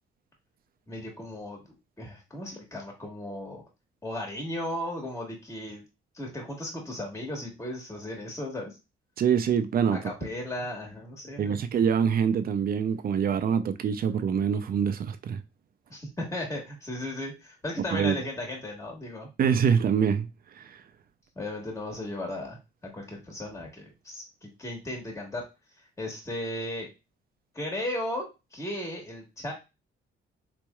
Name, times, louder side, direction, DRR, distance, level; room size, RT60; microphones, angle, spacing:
voice 1, 0.9-1.6 2.0-3.6 4.0-5.8 6.1-8.7 9.9-11.6 15.9-19.3 21.3-22.6 22.9-25.4 26.0-26.9 27.5-28.2 28.5-29.5, left 1 dB, 15° left, 1.4 m, -35 dB
voice 2, 9.2-10.0 11.4-15.4 17.9-18.2 19.4-20.3 20.6-20.7, right 7 dB, 50° right, 0.5 m, -25 dB
4.1 x 3.0 x 2.3 m
cardioid pair, 90°, 20 cm